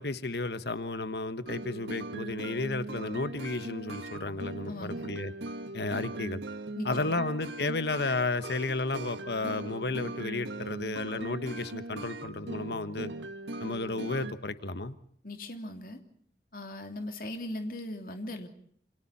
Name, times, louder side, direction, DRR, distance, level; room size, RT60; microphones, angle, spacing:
voice 1, 0.0-5.3 5.7-6.4 6.8-13.1 13.6-15.0, left 3 dB, 70° left, 12 dB, 1.3 m, -33 dB
sound 1, 1.5-14.3, right 2 dB, 90° right, 1.7 m, -40 dB
voice 2, 4.7-5.1 6.8-7.2 15.2-16.0 16.5-18.5, left 1 dB, 50° left, 6 dB, 3.0 m, -39 dB
28.5 x 27.5 x 4.2 m, 0.62 s
head